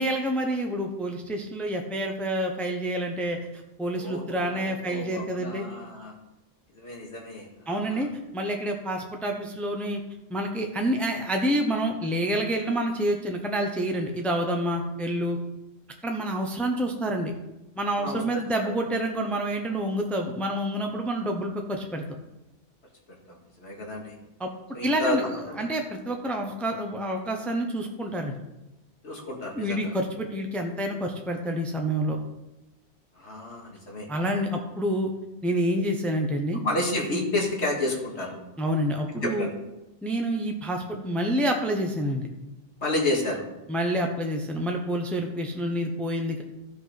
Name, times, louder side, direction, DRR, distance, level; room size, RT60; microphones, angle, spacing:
voice 1, 0.0-3.4 3.8-5.6 7.7-10.0 10.3-15.4 16.0-17.3 17.8-22.0 24.4-24.5 24.8-25.2 25.6-28.4 29.5-32.2 34.1-35.1 35.4-36.6 38.6-39.5 40.0-42.3 43.7-46.4, right 1 dB, ahead, 2 dB, 0.9 m, -28 dB
voice 2, 3.9-6.1 6.7-8.1 17.9-18.4 23.3-24.2 24.7-25.2 25.5-25.7 29.0-29.9 33.2-34.1 36.5-38.3 39.2-39.5 42.8-43.4, left 2 dB, 85° left, -1 dB, 2.4 m, -31 dB
13.0 x 5.7 x 5.9 m, 0.98 s
omnidirectional pair, 1.1 m